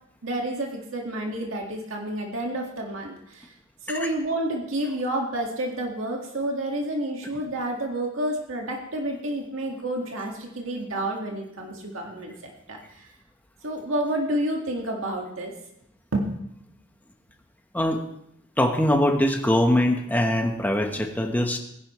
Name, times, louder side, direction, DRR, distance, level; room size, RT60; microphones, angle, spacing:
voice 1, 0.2-3.5 3.8-13.1 13.6-15.5 16.1-16.4, right 1 dB, 85° right, 0 dB, 1.9 m, -29 dB
voice 2, 18.6-21.6, left 1 dB, 10° left, 4 dB, 1.1 m, -22 dB
19.5 x 10.5 x 3.1 m, 0.77 s
head